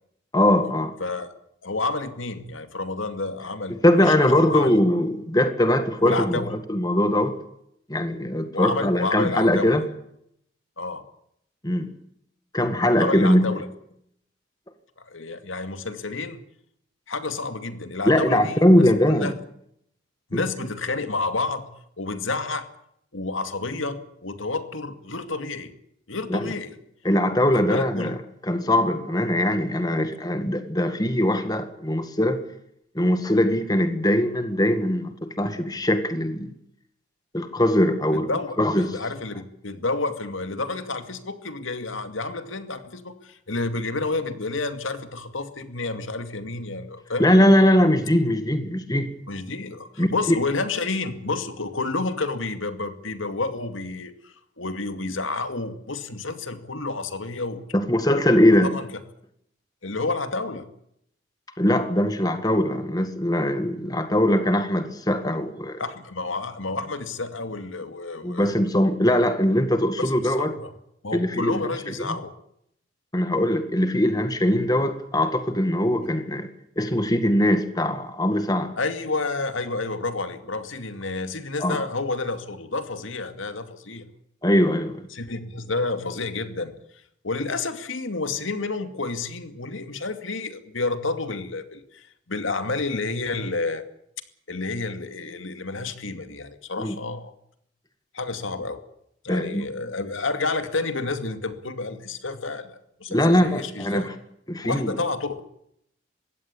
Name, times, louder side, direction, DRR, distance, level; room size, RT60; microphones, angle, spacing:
voice 1, 0.3-0.9 3.7-7.3 7.9-9.8 11.6-11.9 12.5-13.5 18.1-19.3 20.3-20.4 26.3-26.5 27.1-28.2 28.4-32.4 33.0-36.5 37.3-38.3 38.6-38.9 47.2-49.1 50.0-50.4 57.7-58.7 61.6-65.8 68.2-70.5 71.1-71.6 72.0-72.2 73.1-76.5 76.8-78.7 81.6-81.9 84.4-85.0 96.8-97.0 99.3-99.6 103.1-104.1 104.5-104.9, left 1 dB, 20° left, 1.8 m, -21 dB
voice 2, 1.6-4.8 6.0-6.5 8.5-9.7 10.8-11.0 13.0-13.7 15.0-16.4 17.1-19.3 20.3-21.7 22.0-22.7 23.1-25.7 26.1-26.8 27.5-28.1 38.3-47.3 49.3-57.6 58.6-58.9 59.8-60.6 65.8-68.5 70.0-70.7 71.0-72.3 78.8-84.0 85.1-86.7 87.2-93.8 94.5-97.3 98.1-98.8 99.2-104.1 104.6-105.4, left 3 dB, 80° left, 2.3 m, -30 dB
22.5 x 16.5 x 8.5 m
head